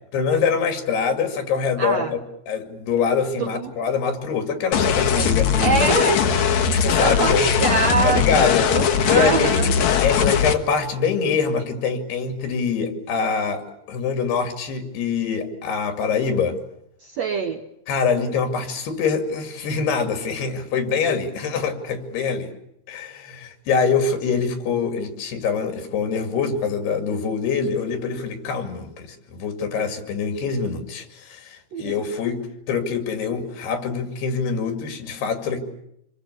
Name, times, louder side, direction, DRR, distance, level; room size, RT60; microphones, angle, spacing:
voice 1, 0.1-2.2 2.5-5.7 6.8-7.5 8.0-8.7 9.1-9.7 10.0-16.6 17.9-22.5 22.9-32.4 32.7-35.6, left 5 dB, 80° left, 7 dB, 4.6 m, -24 dB
voice 2, 1.8-2.1 3.4-3.7 5.1-5.3 5.6-6.2 6.7-8.5 8.7-9.7 17.0-17.6 31.7-31.9, right 5 dB, 70° right, 5 dB, 1.6 m, -24 dB
sound 1, 4.7-10.5, left 7 dB, 60° left, 2.3 m, -20 dB
27.0 x 22.0 x 8.2 m, 0.78 s
omnidirectional pair, 4.6 m